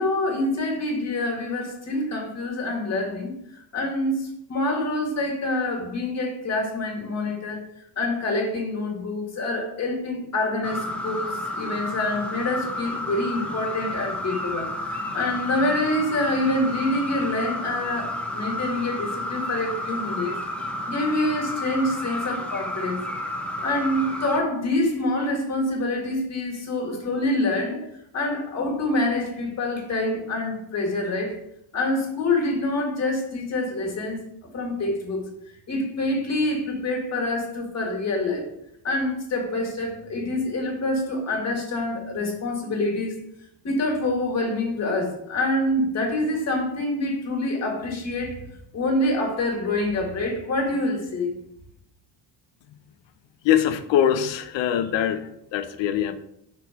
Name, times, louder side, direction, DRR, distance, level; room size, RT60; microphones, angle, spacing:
voice 1, 0.0-3.3 3.7-7.6 7.9-20.3 20.9-23.0 23.6-27.8 28.1-31.4 31.7-34.2 34.5-35.3 35.7-38.5 38.8-43.2 43.6-48.4 48.7-51.3, left 2 dB, 35° left, 1 dB, 1.7 m, -26 dB
sound 1, 10.6-24.4, left 1 dB, 5° left, 0.5 m, -31 dB
voice 2, 53.4-56.2, left 10 dB, 75° left, 10 dB, 0.8 m, -23 dB
6.1 x 4.5 x 4.9 m, 0.77 s
cardioid pair, 160°, 44 cm